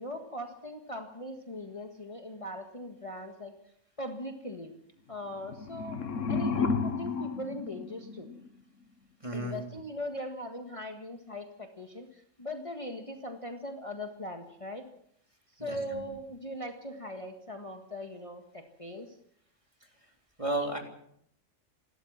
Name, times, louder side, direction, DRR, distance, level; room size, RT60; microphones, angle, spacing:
voice 1, 0.0-3.5 4.0-4.7 5.1-6.0 6.3-8.3 9.3-14.9 15.5-19.2, left 1 dB, 25° left, 4 dB, 1.8 m, -40 dB
sound 1, 5.4-8.5, left 5 dB, 80° left, 1.6 m, -32 dB
voice 2, 9.2-9.6 15.6-16.0 19.8-19.9 20.4-20.8, right 1 dB, 25° right, 2 dB, 3.9 m, -33 dB
28.5 x 13.0 x 7.4 m, 0.71 s
omnidirectional pair, 1.3 m